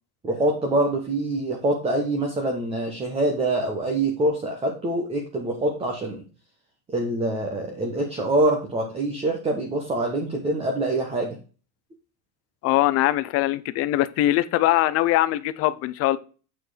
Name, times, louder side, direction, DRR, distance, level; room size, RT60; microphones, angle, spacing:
voice 1, 0.2-6.2 6.9-11.3, right 2 dB, 15° right, 1 dB, 1.1 m, -25 dB
voice 2, 12.6-16.2, left 15 dB, 35° left, 14 dB, 0.5 m, -22 dB
8.3 x 4.5 x 4.9 m, 0.36 s
cardioid pair, 165°, 44 cm